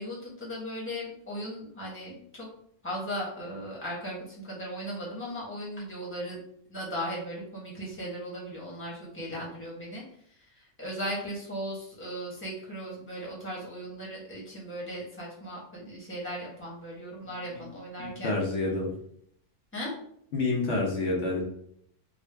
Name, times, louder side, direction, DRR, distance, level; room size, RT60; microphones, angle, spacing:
voice 1, 0.0-2.5 2.8-6.4 6.7-10.0 10.8-18.3 19.7-19.9, equal, 10° left, -4 dB, 1.1 m, -37 dB
voice 2, 18.0-19.0 20.3-21.4, left 2 dB, 70° left, -2 dB, 1.1 m, -28 dB
3.7 x 2.4 x 3.3 m, 0.67 s
omnidirectional pair, 1.3 m